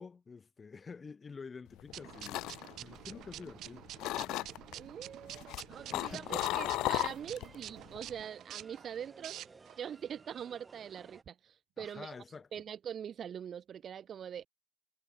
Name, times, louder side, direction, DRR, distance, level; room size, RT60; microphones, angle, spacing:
voice 1, 0.0-3.9 5.9-6.7 11.8-12.5, left 5 dB, 25° left, 1.0 m, -48 dB
sound 1, 1.8-3.6 4.0-4.7 5.3-7.5 7.9-8.2, left 17 dB, 75° left, 0.4 m, -35 dB
sound 2, 1.9-9.8, right 13 dB, 65° right, 0.8 m, -48 dB
voice 2, 4.7-9.4 9.8-12.1 12.5-14.5, right 8 dB, 45° right, 0.4 m, -43 dB
sound 3, 5.7-11.2, right 4 dB, 25° right, 3.6 m, -58 dB
cardioid pair, 115°, 0 cm